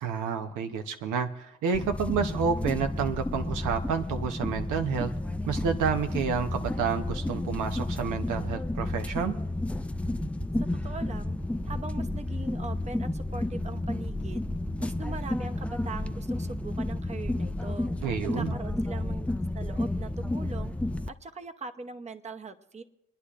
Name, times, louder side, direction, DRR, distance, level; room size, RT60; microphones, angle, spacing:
voice 1, 0.0-5.1 5.5-9.4 18.0-18.6, right 6 dB, 85° right, 6 dB, 0.9 m, -29 dB
sound 1, 1.7-21.1, left 1 dB, 5° left, 0.3 m, -31 dB
voice 2, 10.7-11.4 11.6-14.5 14.8-17.9 18.2-20.7 21.1-22.8, right 3 dB, 20° right, 7 dB, 0.8 m, -41 dB
29.0 x 9.9 x 2.5 m, 0.86 s
cardioid pair, 90°, 30 cm